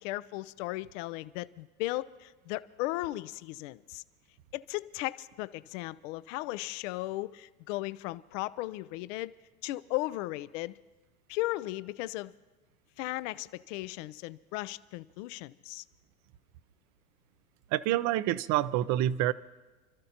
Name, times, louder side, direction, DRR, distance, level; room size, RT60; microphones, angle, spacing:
voice 1, 0.0-4.0 4.5-9.3 9.6-10.8 11.3-12.3 13.0-15.8, left 18 dB, 60° left, 0.6 m, -36 dB
voice 2, 17.7-19.3, right 13 dB, 40° right, 0.6 m, -27 dB
29.0 x 13.0 x 2.9 m
hypercardioid pair, 100°, 43 cm